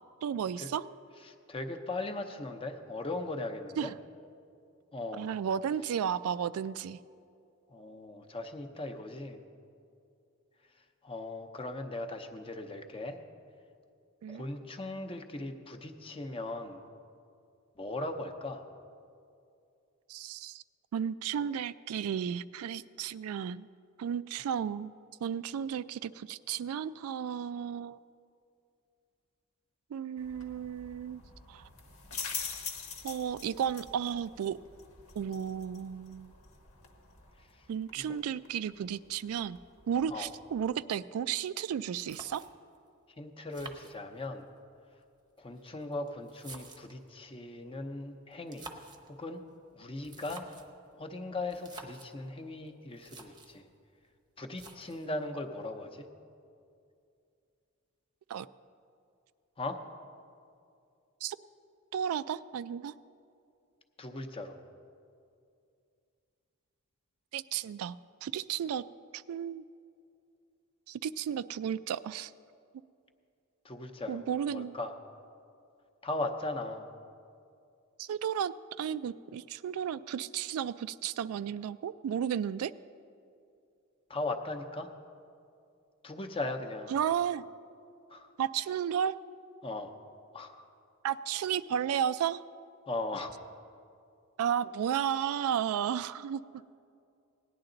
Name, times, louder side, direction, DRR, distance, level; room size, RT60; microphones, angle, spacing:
voice 1, 0.2-0.8 3.8-3.9 5.2-7.0 14.2-14.4 20.1-20.6 20.9-23.7 24.0-24.9 25.2-28.0 29.9-31.2 31.5-31.6 33.0-34.6 35.2-36.3 37.7-39.6 39.9-42.4 58.3-58.5 61.2-61.4 61.9-62.9 67.3-68.8 69.1-69.6 70.9-72.3 74.1-74.7 78.0-82.7 86.9-87.4 88.4-89.2 91.0-92.4 94.4-96.4, right 8 dB, 75° right, 16 dB, 0.3 m, -33 dB
voice 2, 1.3-3.9 4.9-5.3 7.7-9.4 11.0-13.2 14.3-16.8 17.8-18.6 38.1-38.2 40.1-40.3 43.2-44.4 45.4-48.7 49.2-49.4 49.7-50.5 51.0-53.6 54.4-56.1 59.6-59.8 64.0-64.6 73.6-74.2 74.5-74.9 76.0-76.9 84.1-84.9 86.0-86.9 88.1-88.3 89.6-89.9 90.3-90.6 92.9-93.3, left 2 dB, 25° left, 5 dB, 0.7 m, -38 dB
sound 1, 30.2-40.8, left 6 dB, 80° left, 1.2 m, -46 dB
sound 2, 41.7-41.8 42.1-42.8 43.5-44.5 45.4-47.1 48.3-49.1 50.0-50.8 51.5-52.1 52.7-52.8 52.9-53.6 54.5-55.1, right 3 dB, 20° right, 0.8 m, -50 dB
18.0 x 10.0 x 3.9 m, 2.5 s
head